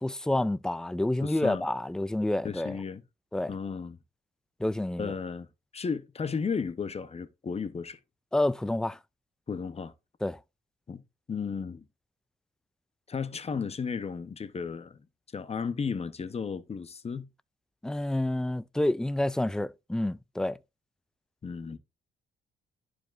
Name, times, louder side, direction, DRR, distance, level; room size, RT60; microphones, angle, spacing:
voice 1, 0.0-2.7 3.3-3.5 4.6-5.1 8.3-9.0 10.2-10.4 17.8-20.6, left 1 dB, 5° left, 0.3 m, -28 dB
voice 2, 1.2-1.7 2.4-3.0 3.5-4.0 5.0-5.5 5.7-8.0 9.5-9.9 10.9-11.0 11.3-11.8 13.1-15.0 15.3-17.3 21.4-21.8, left 5 dB, 30° left, 0.8 m, -34 dB
11.5 x 5.0 x 2.5 m
cardioid pair, 90°, 20 cm